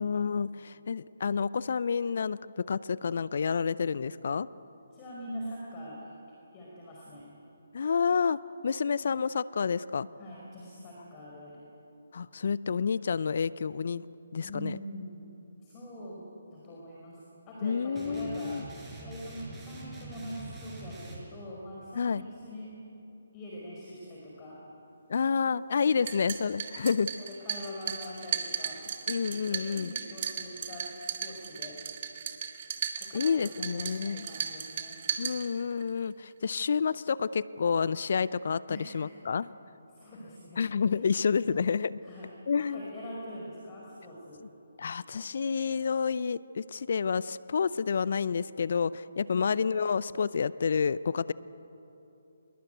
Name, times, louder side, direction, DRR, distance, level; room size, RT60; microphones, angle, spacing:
voice 1, 0.0-4.5 7.7-8.4 8.6-10.1 12.1-14.0 14.3-14.8 17.6-18.6 22.0-22.2 25.1-27.1 29.1-29.9 33.1-34.3 35.2-39.5 40.6-42.0 42.5-42.9 44.8-51.3, left 6 dB, 55° left, 19 dB, 0.5 m, -29 dB
voice 2, 4.9-6.1 6.5-7.3 10.2-11.6 14.4-15.3 15.6-17.2 17.5-18.6 19.0-22.7 23.3-24.6 26.0-26.1 27.2-28.8 29.5-31.8 33.0-35.0 38.7-39.1 39.9-40.6 41.0-41.8 42.0-44.4 49.3-49.6, equal, 20° left, -4 dB, 5.1 m, -43 dB
sound 1, 17.9-21.2, right 2 dB, 10° right, 5.1 m, -44 dB
sound 2, 25.9-35.9, right 8 dB, 40° right, 2.2 m, -36 dB
25.5 x 21.5 x 9.3 m, 3.0 s
figure-of-eight pair, 140°, 0 cm